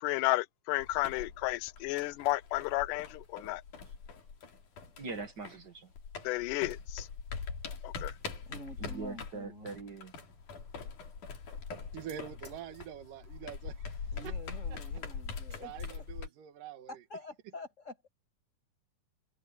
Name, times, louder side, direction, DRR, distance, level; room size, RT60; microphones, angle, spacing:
voice 1, 0.0-3.6 6.2-7.1 7.8-8.1, left 19 dB, 75° left, 2.1 m, -32 dB
sound 1, 0.8-5.7 6.0-16.3, left 5 dB, 60° left, 4.4 m, -43 dB
voice 2, 5.0-5.9 8.8-10.1, right 4 dB, 40° right, 1.6 m, -42 dB
voice 3, 8.5-9.8 14.1-16.1 16.9-18.1, left 2 dB, 20° left, 7.4 m, -47 dB
voice 4, 11.9-14.3 15.6-17.0, right 9 dB, 75° right, 2.9 m, -45 dB
sound 2, 12.1-12.6 13.9-14.3 15.3-16.0 16.3-16.4, right 1 dB, 20° right, 6.9 m, -60 dB
omnidirectional pair, 4.1 m